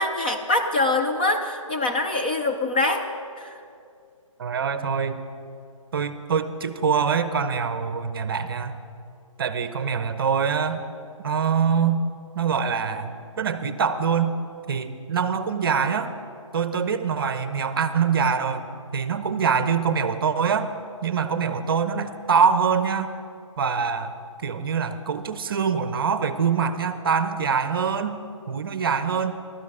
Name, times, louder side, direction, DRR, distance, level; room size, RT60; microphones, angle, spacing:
voice 1, 0.0-3.0 3.4-3.5, left 2 dB, 15° left, 3 dB, 0.4 m, -24 dB
voice 2, 4.4-5.2 5.9-8.8 9.4-10.8 11.2-12.0 12.3-14.3 14.7-16.1 16.5-18.7 18.9-20.7 21.0-23.1 23.6-24.1 24.4-28.2 28.5-29.4, right 6 dB, 40° right, 11 dB, 0.8 m, -24 dB
14.5 x 12.5 x 4.9 m, 2.4 s
hypercardioid pair, 165°, 17 cm